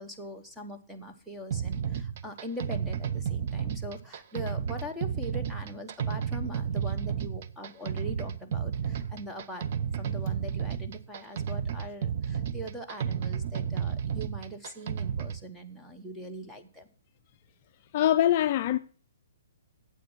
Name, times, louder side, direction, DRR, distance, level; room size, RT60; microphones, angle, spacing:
voice 1, 0.0-16.9, equal, 5° right, 1.0 m, -41 dB
sound 1, 1.5-15.4, right 8 dB, 45° right, 0.7 m, -32 dB
voice 2, 17.9-18.8, left 12 dB, 35° left, 0.4 m, -23 dB
9.2 x 8.3 x 6.0 m
hypercardioid pair, 160°, 0 cm